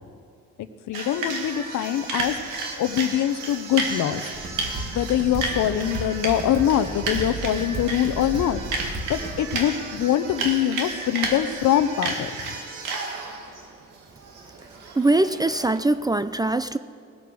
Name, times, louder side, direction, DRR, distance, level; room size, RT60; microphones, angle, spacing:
voice 1, 0.6-2.4 2.8-4.3 4.9-8.6 9.1-12.3, left 11 dB, 70° left, 12 dB, 0.8 m, -23 dB
sound 1, 0.9-15.8, right 3 dB, 90° right, 1.8 m, -32 dB
sound 2, 4.3-9.4, right 2 dB, 40° right, 2.0 m, -34 dB
voice 2, 15.0-16.8, right 2 dB, 15° right, 13 dB, 0.4 m, -22 dB
19.5 x 8.3 x 6.3 m, 2.3 s
cardioid pair, 90°, 30 cm